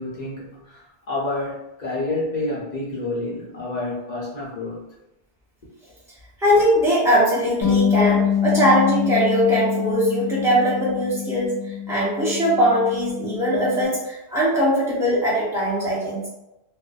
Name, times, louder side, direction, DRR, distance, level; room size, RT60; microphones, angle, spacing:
voice 1, 0.0-4.9, left 2 dB, 45° left, -6 dB, 0.6 m, -29 dB
voice 2, 6.4-11.5 11.9-16.3, equal, 5° right, -8 dB, 0.7 m, -20 dB
Bass guitar, 7.6-13.9, left 9 dB, 75° left, 1.0 m, -25 dB
2.5 x 2.1 x 2.4 m, 0.92 s
omnidirectional pair, 1.3 m